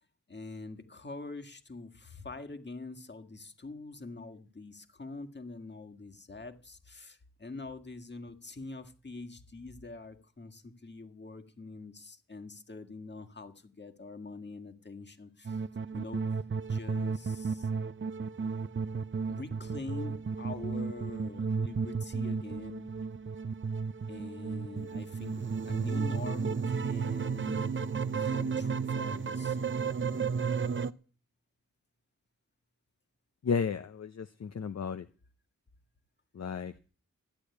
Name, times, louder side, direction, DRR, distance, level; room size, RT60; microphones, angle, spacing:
voice 1, 0.3-15.6 15.9-16.2 16.7-17.7 19.3-22.9 24.1-25.4 25.7-27.8 28.2-29.6, left 3 dB, 35° left, 1.9 m, -44 dB
sound 1, 15.4-30.9, right 5 dB, 40° right, 0.6 m, -33 dB
voice 2, 33.4-35.1 36.3-36.8, left 6 dB, 55° left, 0.7 m, -33 dB
14.0 x 8.5 x 9.8 m
wide cardioid pair, 105°, 31 cm